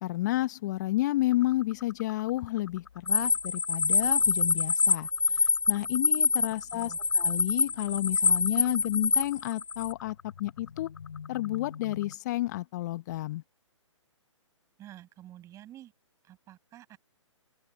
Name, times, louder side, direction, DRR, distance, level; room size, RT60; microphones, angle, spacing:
voice 1, 0.0-10.9 11.3-13.4, left 16 dB, 35° left, 0.9 m, -31 dB
sound 1, 1.3-12.2, left 7 dB, 60° left, 4.0 m, -49 dB
sound 2, 3.1-9.9, left 4 dB, 85° left, 0.7 m, -26 dB
voice 2, 6.5-7.0 14.8-15.9 16.2-17.0, right 13 dB, 20° right, 7.8 m, -50 dB
open air
figure-of-eight pair, 130°, 16 cm